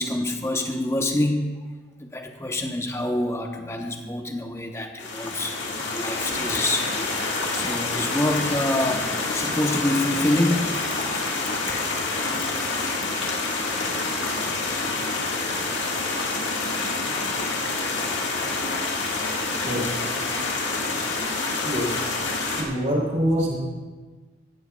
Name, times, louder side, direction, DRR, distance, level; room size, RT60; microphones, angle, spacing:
voice 1, 0.0-1.5 2.0-10.7 11.5-11.8, left 1 dB, 15° left, 3 dB, 0.9 m, -26 dB
sound 1, 5.0-22.6, left 3 dB, 75° left, 1.8 m, -27 dB
voice 2, 19.6-20.1 20.4-20.5 21.6-22.1 22.5-23.6, equal, 40° right, -2 dB, 3.4 m, -26 dB
17.0 x 13.5 x 2.4 m, 1.3 s
head